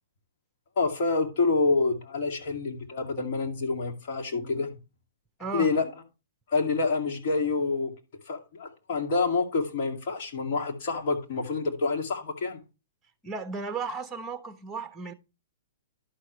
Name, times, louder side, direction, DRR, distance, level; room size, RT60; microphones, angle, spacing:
voice 1, 0.8-4.7 5.5-6.0 6.5-7.9 8.3-12.6, left 3 dB, 50° left, 2.3 m, -27 dB
voice 2, 5.4-5.7 13.2-15.1, right 4 dB, 10° right, 0.9 m, -34 dB
11.5 x 6.3 x 3.2 m
hypercardioid pair, 130°, 0 cm